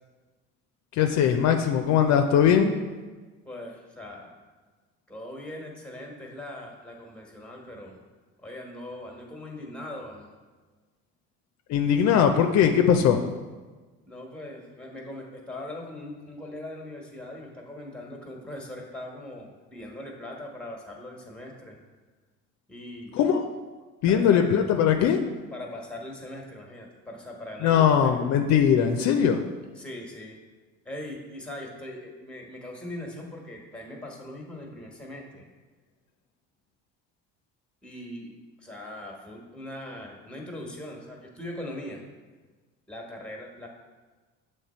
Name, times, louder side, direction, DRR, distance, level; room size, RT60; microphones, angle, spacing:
voice 1, 0.9-2.7 11.7-13.2 23.1-23.4 24.0-25.2 27.6-29.4, left 8 dB, 65° left, 6 dB, 0.5 m, -20 dB
voice 2, 3.4-4.3 5.1-8.0 8.4-10.3 14.0-21.8 22.7-23.2 24.1-24.4 25.5-28.3 29.8-30.4 30.8-35.4 37.8-42.0 42.9-43.7, left 1 dB, 5° left, 0 dB, 1.3 m, -40 dB
7.3 x 3.2 x 4.3 m, 1.3 s
supercardioid pair, 95°, 30 cm